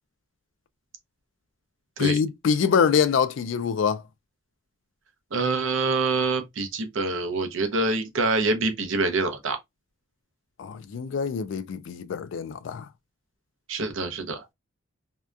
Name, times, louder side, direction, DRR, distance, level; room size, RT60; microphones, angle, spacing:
voice 1, 2.0-4.0 10.6-12.9, left 6 dB, 65° left, 0.3 m, -24 dB
voice 2, 5.3-9.6 13.7-14.4, right 3 dB, 70° right, 0.6 m, -25 dB
2.7 x 2.2 x 2.3 m
head